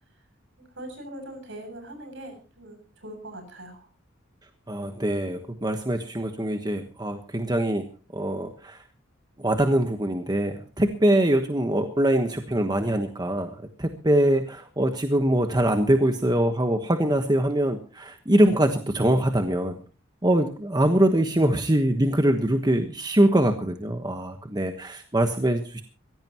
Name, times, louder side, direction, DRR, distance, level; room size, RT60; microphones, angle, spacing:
voice 1, 0.6-3.9, right 1 dB, 65° right, 5 dB, 7.6 m, -41 dB
voice 2, 4.7-7.8 8.1-8.8 9.4-13.5 13.8-19.8 20.2-25.8, right 1 dB, 20° right, 6 dB, 1.3 m, -23 dB
23.0 x 16.5 x 3.0 m, 0.36 s
head